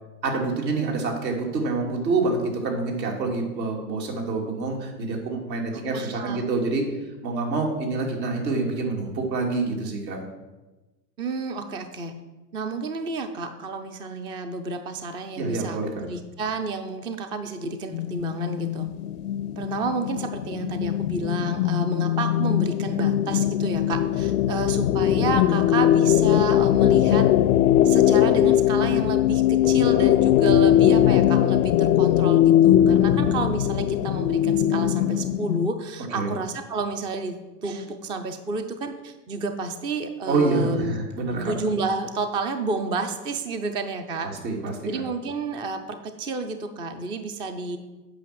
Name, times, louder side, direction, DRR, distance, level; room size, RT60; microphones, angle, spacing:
voice 1, 0.2-6.9 7.2-10.2 15.4-15.9 36.1-36.3 40.3-41.5 44.2-45.0, right 3 dB, 80° right, 0 dB, 2.8 m, -27 dB
voice 2, 5.7-6.4 11.2-12.1 12.5-18.9 19.6-27.3 27.8-41.0 41.3-44.3 44.9-47.8, right 3 dB, 10° right, 8 dB, 0.3 m, -30 dB
sound 1, 17.9-35.7, left 11 dB, 65° left, 0.5 m, -20 dB
8.5 x 5.6 x 7.6 m, 1.1 s
hypercardioid pair, 105°, 50 cm